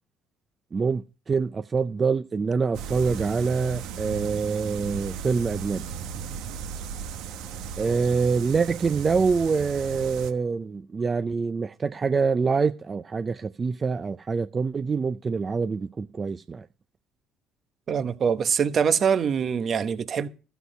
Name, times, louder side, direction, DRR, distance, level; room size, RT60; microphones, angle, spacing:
voice 1, 0.7-5.8 7.8-16.7, right 5 dB, 30° right, 0.5 m, -25 dB
sound 1, 2.7-10.3, right 7 dB, 80° right, 1.1 m, -36 dB
voice 2, 17.9-20.3, right 7 dB, 50° right, 1.0 m, -24 dB
13.0 x 8.1 x 5.1 m
supercardioid pair, 90°, 0 cm